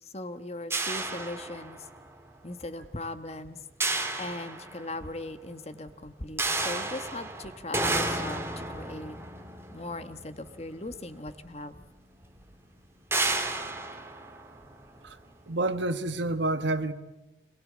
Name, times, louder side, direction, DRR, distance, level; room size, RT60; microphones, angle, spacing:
voice 1, 0.0-1.9 2.4-3.6 4.2-9.1 9.7-11.8, left 2 dB, 35° left, 1.3 m, -39 dB
sound 1, 0.7-2.1 3.8-5.1 6.4-10.8 11.8-11.9 12.2-12.4 13.1-15.1, right 2 dB, 15° right, 1.9 m, -32 dB
voice 2, 15.5-16.9, right 2 dB, 75° right, 1.5 m, -28 dB
26.5 x 21.5 x 8.5 m
head